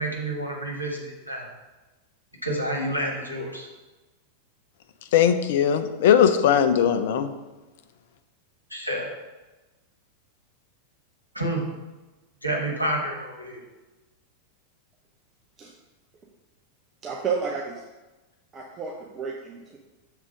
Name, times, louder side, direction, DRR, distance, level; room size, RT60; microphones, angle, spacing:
voice 1, 0.0-1.5 2.4-3.7 8.7-9.1 11.3-11.6 12.4-13.6, right 1 dB, 90° left, 0 dB, 1.2 m, -29 dB
voice 2, 5.1-7.3, left 8 dB, 55° left, 9 dB, 0.4 m, -19 dB
voice 3, 17.0-17.8 18.5-19.8, right 5 dB, 25° right, -1 dB, 0.7 m, -31 dB
6.4 x 3.7 x 4.9 m, 1.1 s
figure-of-eight pair, 90°, 0 cm